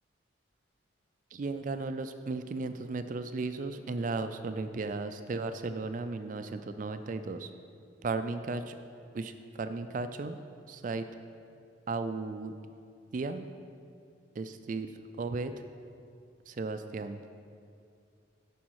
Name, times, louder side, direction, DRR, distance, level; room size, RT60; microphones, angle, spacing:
voice 1, 1.3-7.5 8.0-8.8 9.1-10.4 10.7-11.1 11.9-12.5 13.1-13.5 14.4-14.9 15.2-15.5 16.5-17.2, right 3 dB, 40° right, 9 dB, 0.3 m, -35 dB
11.5 x 6.2 x 4.7 m, 2.4 s
head